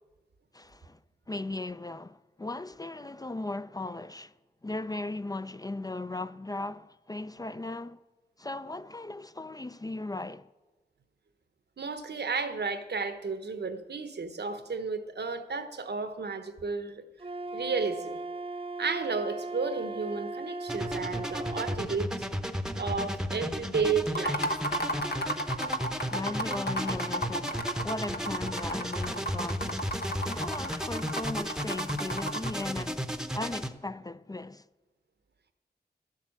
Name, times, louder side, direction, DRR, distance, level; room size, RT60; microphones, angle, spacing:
voice 1, 0.5-1.0 1.3-4.3 4.6-8.0 8.4-10.5 26.1-29.9 30.2-33.1 33.3-34.6, left 2 dB, 20° left, 0.4 m, -37 dB
voice 2, 11.8-17.0 17.5-18.2 18.8-22.1 22.7-24.6, right 4 dB, 80° right, 0.9 m, -32 dB
Wind instrument woodwind instrument, 17.2-21.8, right 2 dB, 35° right, 0.6 m, -38 dB
sound 1, 20.7-33.7, equal, 5° right, 0.8 m, -34 dB
sound 2, 24.1-32.7, equal, 70° left, 1.1 m, -33 dB
12.0 x 7.5 x 7.6 m
cardioid pair, 50°, 17 cm